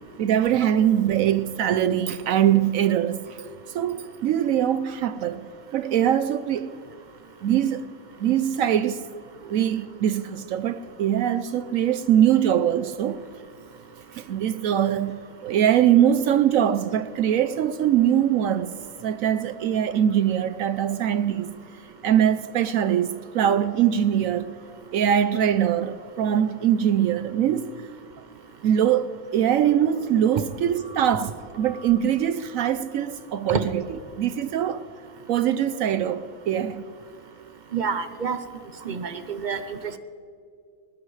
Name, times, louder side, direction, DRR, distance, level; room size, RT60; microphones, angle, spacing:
voice 1, 0.2-3.4 3.7-6.8 7.4-7.9 8.2-9.0 9.5-13.2 14.1-18.7 19.0-21.5 22.0-24.5 24.9-27.7 28.6-34.8 35.3-36.8, right 10 dB, 70° right, 0.9 m, -22 dB
voice 2, 37.7-38.4 38.8-40.0, right 5 dB, 45° right, 0.6 m, -28 dB
20.5 x 19.5 x 3.2 m
omnidirectional pair, 1.7 m